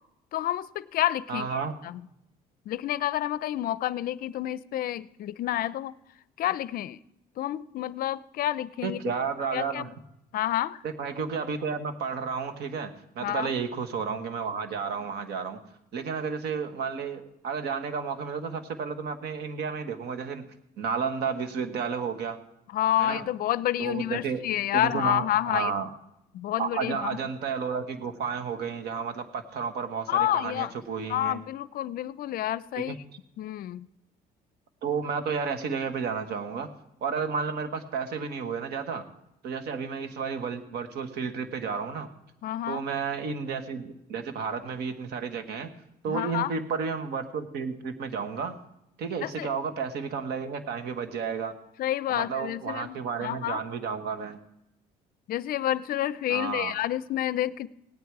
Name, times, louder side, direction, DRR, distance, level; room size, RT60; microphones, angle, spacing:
voice 1, 0.3-1.5 1.8-2.0 2.7-5.9 6.4-7.0 7.4-9.1 9.5-9.9 10.3-10.8 13.2-13.5 22.7-25.7 26.3-27.2 30.1-30.7 31.1-32.9 33.4-33.9 42.4-42.8 46.1-46.5 49.2-49.5 51.8-53.6 55.3-57.7, left 13 dB, 60° left, 18 dB, 0.5 m, -29 dB
voice 2, 1.3-1.7 8.8-9.9 10.8-15.6 15.9-20.5 20.8-22.4 23.0-23.3 23.8-24.4 24.7-25.9 26.6-31.4 32.9-33.0 34.8-36.7 37.0-39.0 39.4-42.1 42.7-45.7 46.0-48.6 49.0-51.5 52.1-54.4 56.3-56.8, right 6 dB, 75° right, 8 dB, 1.4 m, -32 dB
17.5 x 10.0 x 4.7 m, 0.84 s
cardioid pair, 110°, 17 cm